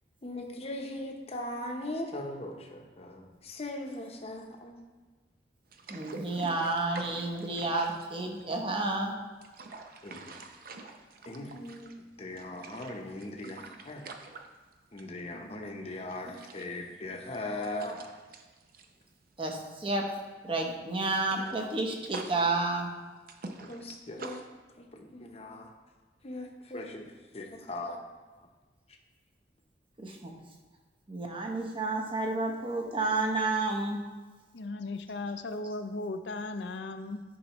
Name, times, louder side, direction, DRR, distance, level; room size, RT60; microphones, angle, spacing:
voice 1, 0.2-4.8 10.0-10.3 11.3-11.9 12.2-14.0 14.9-18.0 23.6-24.4 24.8-25.7 26.2-28.1, left 1 dB, 35° left, 2 dB, 0.8 m, -39 dB
sound 1, 5.7-8.8 9.2-12.1 12.4-15.2 15.5-15.7 16.1-19.9 20.1-20.3 20.7-24.4, right 3 dB, 55° right, 0.6 m, -46 dB
voice 2, 5.9-9.1 19.4-20.1 20.4-22.9 30.0-30.3 31.1-34.0, right 2 dB, 30° right, 2 dB, 0.9 m, -30 dB
voice 3, 34.5-37.2, left 2 dB, 70° left, 9 dB, 0.5 m, -36 dB
10.0 x 5.4 x 3.0 m, 1.3 s
head